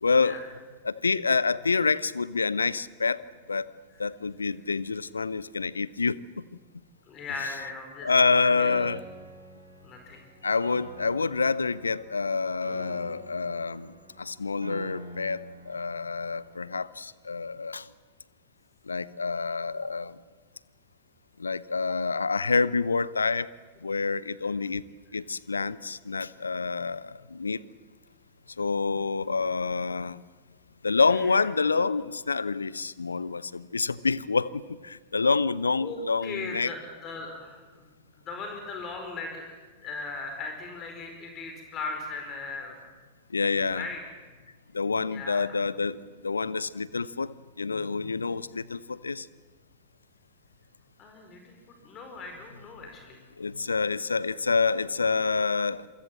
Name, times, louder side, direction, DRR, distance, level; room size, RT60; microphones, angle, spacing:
voice 1, 0.0-0.4 0.8-3.7 4.0-6.4 8.0-9.0 10.4-17.9 18.9-20.2 21.4-23.5 23.8-24.8 25.1-27.6 28.6-30.2 30.8-36.7 43.3-43.9 44.7-49.3 53.4-55.9, left 4 dB, 75° left, 20 dB, 0.7 m, -27 dB
voice 2, 7.1-8.9 9.8-10.2 31.2-31.3 35.8-39.6 39.8-42.7 43.4-44.0 45.1-45.6 51.0-53.2, left 3 dB, 30° left, 4 dB, 4.8 m, -38 dB
Piano, 8.6-16.6, right 2 dB, 80° right, 3.8 m, -45 dB
27.5 x 24.0 x 7.7 m, 1.4 s
figure-of-eight pair, 90°, 0 cm